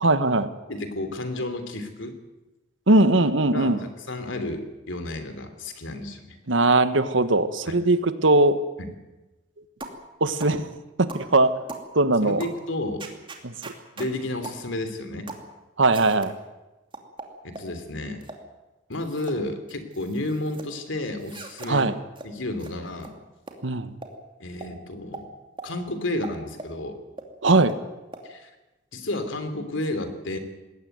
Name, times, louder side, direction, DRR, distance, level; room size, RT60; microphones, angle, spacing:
voice 1, 0.0-0.5 2.9-3.8 6.5-8.6 10.2-10.7 11.0-11.6 11.9-12.4 13.4-13.5 15.8-16.3 21.7-21.9 23.6-23.9 27.4-27.7, right 2 dB, 85° right, 11 dB, 1.5 m, -20 dB
voice 2, 0.7-2.1 3.5-6.4 7.7-7.8 8.8-8.9 12.2-13.0 14.0-15.3 17.4-18.2 18.9-21.9 22.2-23.1 24.4-25.3 25.6-27.0 28.2-28.5 28.9-30.4, left 1 dB, 85° left, 9 dB, 3.1 m, -31 dB
sound 1, 9.8-10.0 10.4-10.6 11.1-11.3 11.7-11.9 12.4-12.6 13.0-14.1 14.4-14.6 15.3-15.5 15.9-16.3 16.9-17.7 18.2-18.4 18.9-19.4 19.7-20.7 21.2-21.7 22.2-22.3 22.6-22.7 23.0-23.1 23.5-23.6 24.0-24.1 24.6-24.7 25.1-25.3 25.6-25.7 26.2-26.7 27.2-27.3 27.7-27.8 28.1-28.2, right 3 dB, 25° right, 2.6 m, -40 dB
20.5 x 17.0 x 9.4 m, 1.1 s
head